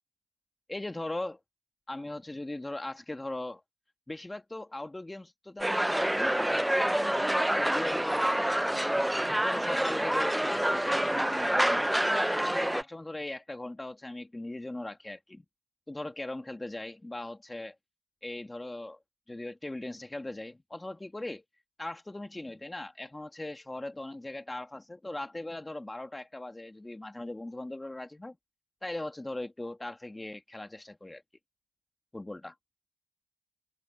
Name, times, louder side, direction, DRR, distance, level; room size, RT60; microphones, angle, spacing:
voice 1, 0.7-1.4 1.9-3.6 4.1-8.9 9.4-15.4 15.9-17.7 18.2-19.0 19.3-21.4 21.8-28.3 28.8-31.2 32.1-32.5, left 2 dB, 15° left, 1.6 m, -39 dB
sound 1, 5.6-12.8, right 1 dB, 5° right, 0.4 m, -27 dB
cardioid pair, 90°, 0 cm